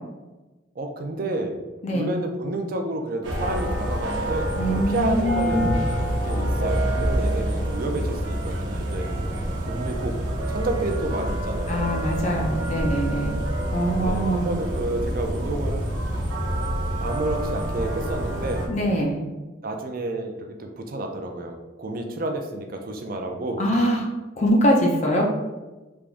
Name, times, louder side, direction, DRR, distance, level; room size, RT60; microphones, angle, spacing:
voice 1, 0.8-1.6 1.9-5.7 6.2-9.1 9.6-10.2 10.5-11.9 14.0-15.8 17.0-18.7 19.6-23.7, right 2 dB, 50° right, 4 dB, 0.4 m, -30 dB
sound 1, 3.2-18.7, right 1 dB, 70° right, 0.9 m, -27 dB
voice 2, 4.6-5.8 11.7-13.3 13.7-14.5 18.7-19.2 23.6-24.1 24.4-25.3, equal, 40° left, 0 dB, 0.6 m, -23 dB
3.5 x 3.4 x 2.5 m, 1.1 s
head